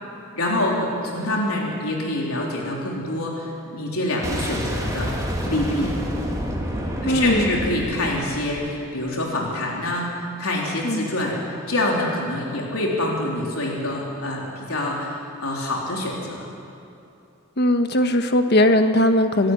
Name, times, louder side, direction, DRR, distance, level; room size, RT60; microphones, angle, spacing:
voice 1, 0.4-5.1 5.5-5.9 7.0-16.5, left 1 dB, 80° left, -2 dB, 3.8 m, -26 dB
Boom, 4.2-9.1, equal, 15° right, 2.8 m, -28 dB
voice 2, 7.0-7.5 10.8-11.1 17.6-19.5, left 1 dB, 50° left, 7 dB, 1.3 m, -19 dB
26.5 x 12.5 x 9.7 m, 2.7 s
head